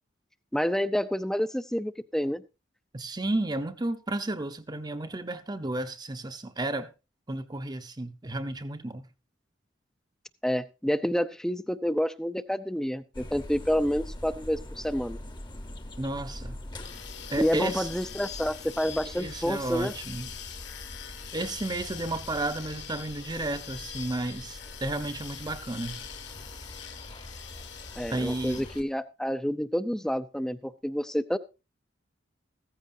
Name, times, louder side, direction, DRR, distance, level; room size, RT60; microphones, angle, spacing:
voice 1, 0.5-2.4 10.4-15.2 17.4-19.9 28.0-31.4, equal, 5° left, 0.6 m, -28 dB
voice 2, 2.9-6.9 7.3-9.0 16.0-16.6 17.3-17.9 19.1-20.3 21.3-26.0 28.1-28.6, right 2 dB, 20° right, 0.8 m, -32 dB
sound 1, 13.1-28.8, left 1 dB, 25° left, 1.0 m, -44 dB
sound 2, 16.8-28.8, left 9 dB, 65° left, 1.9 m, -43 dB
15.0 x 14.5 x 2.7 m
head